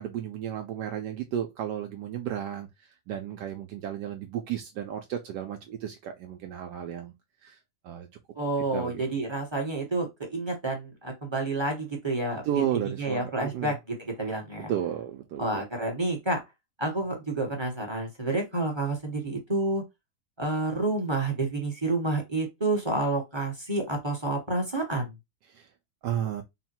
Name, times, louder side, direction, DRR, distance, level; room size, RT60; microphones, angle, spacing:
voice 1, 0.0-7.1 7.4-8.1 8.7-9.0 12.4-13.7 14.7-15.6 25.4-25.7 26.0-26.4, right 10 dB, 75° right, 1.2 m, -33 dB
voice 2, 8.3-12.6 13.0-14.7 15.4-16.4 16.8-19.8 20.4-25.1, right 2 dB, 20° right, 1.0 m, -29 dB
4.0 x 2.1 x 4.4 m
omnidirectional pair, 1.9 m